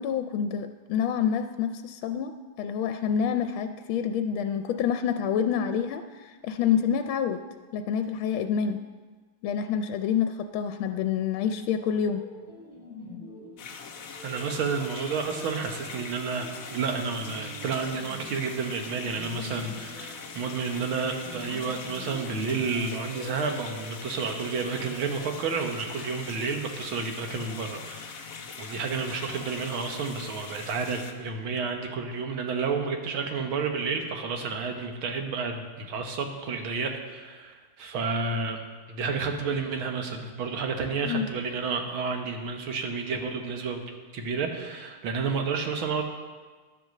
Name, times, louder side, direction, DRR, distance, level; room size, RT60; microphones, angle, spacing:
voice 1, 0.0-2.3 2.6-7.4 7.7-8.8 9.4-12.2 41.0-41.3, left 8 dB, 85° left, 7 dB, 1.4 m, -27 dB
sound 1, 11.8-25.1, left 1 dB, 35° left, 2.4 m, -47 dB
sound 2, 13.6-31.1, left 5 dB, 55° left, 1.0 m, -42 dB
voice 2, 14.2-28.3 28.6-38.6 38.9-43.8 44.1-46.0, right 5 dB, 80° right, 4 dB, 2.0 m, -31 dB
11.0 x 7.8 x 6.6 m, 1.4 s
omnidirectional pair, 2.2 m